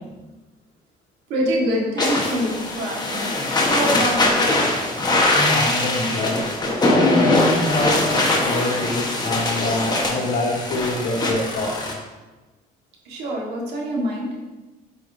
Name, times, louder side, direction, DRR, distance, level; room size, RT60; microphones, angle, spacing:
voice 1, 1.3-3.3 3.6-4.4 13.0-14.3, equal, 85° right, -2 dB, 1.7 m, -25 dB
sound 1, 2.0-11.9, left 2 dB, 25° left, 1.2 m, -21 dB
voice 2, 5.3-6.4 6.8-11.9, left 1 dB, 65° left, -1 dB, 1.7 m, -25 dB
8.1 x 4.8 x 2.7 m, 1.2 s
cardioid pair, 110°, 17 cm